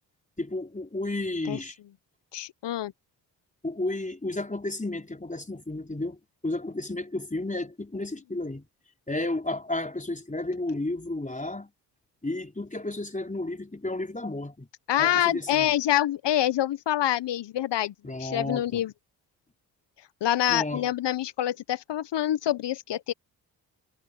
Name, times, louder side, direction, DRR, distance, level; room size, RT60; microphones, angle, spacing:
voice 1, 0.4-1.8 3.6-8.7 9.1-11.7 12.2-14.7 15.0-15.7 18.0-18.8 20.5-20.8, left 2 dB, 15° left, 4.7 m, -32 dB
voice 2, 2.3-2.9 14.9-17.9 18.2-18.9 20.2-23.1, left 12 dB, 60° left, 1.2 m, -26 dB
hypercardioid pair, 40°, 47 cm